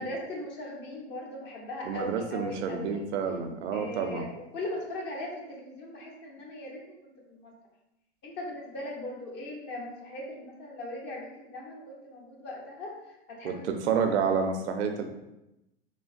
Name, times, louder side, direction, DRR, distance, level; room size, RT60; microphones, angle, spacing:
voice 1, 0.0-3.0 3.7-7.5 8.2-13.6 14.3-14.4, left 1 dB, 35° left, -2 dB, 0.9 m, -39 dB
voice 2, 1.8-4.3 13.4-15.0, right 6 dB, 80° right, 6 dB, 0.5 m, -29 dB
3.8 x 2.1 x 2.5 m, 0.90 s
hypercardioid pair, 125°, 33 cm